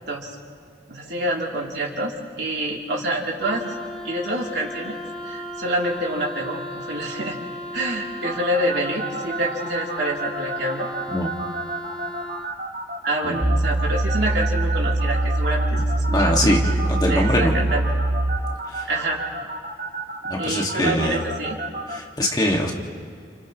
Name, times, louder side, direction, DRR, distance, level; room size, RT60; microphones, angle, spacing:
voice 1, 0.9-5.0 5.2-7.4 7.7-10.9 13.0-16.4 17.1-17.8 18.9-19.2 20.4-21.6, right 1 dB, 65° right, -2 dB, 3.3 m, -27 dB
Wind instrument woodwind instrument, 3.4-12.5, left 1 dB, 5° left, 1.4 m, -35 dB
sound 1, 8.2-22.0, right 3 dB, 45° right, 3.3 m, -31 dB
voice 2, 13.2-13.6 16.1-17.5 18.7-18.9 20.3-21.2 21.9-22.7, equal, 20° left, -1 dB, 2.0 m, -23 dB
sound 2, 13.4-18.4, right 1 dB, 15° right, 0.4 m, -22 dB
30.0 x 29.5 x 3.1 m, 2.2 s
head